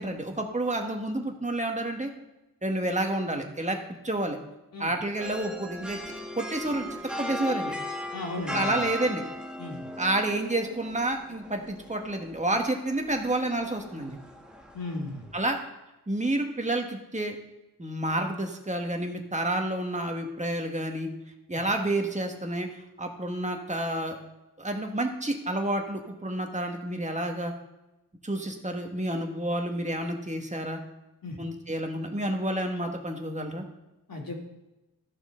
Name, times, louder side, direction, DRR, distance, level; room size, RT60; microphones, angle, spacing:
voice 1, 0.0-2.1 2.6-3.8 4.0-4.4 4.8-6.0 6.3-7.7 8.4-9.2 10.0-14.2 15.3-15.6 16.1-17.3 17.8-21.1 21.5-24.2 24.6-27.5 28.2-30.8 31.4-33.6, right 1 dB, 20° right, 3 dB, 1.6 m, -29 dB
sound 1, 5.2-15.5, equal, ahead, 1.3 m, -38 dB
voice 2, 8.1-8.8 9.6-9.8 14.7-15.2 21.5-21.6 31.2-31.4 34.1-34.4, left 2 dB, 60° left, -2 dB, 2.8 m, -35 dB
14.0 x 6.2 x 3.9 m, 0.99 s
cardioid pair, 60°, 40 cm